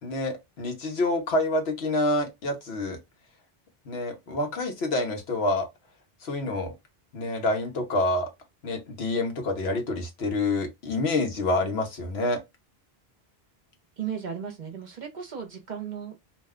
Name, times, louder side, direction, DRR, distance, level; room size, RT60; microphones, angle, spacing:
voice 1, 0.0-3.0 3.9-5.7 6.2-6.7 7.1-8.3 8.6-12.4, left 2 dB, 90° left, 1.1 m, -27 dB
voice 2, 14.0-16.1, right 8 dB, 50° right, 0.8 m, -35 dB
2.6 x 2.2 x 3.5 m
omnidirectional pair, 1.0 m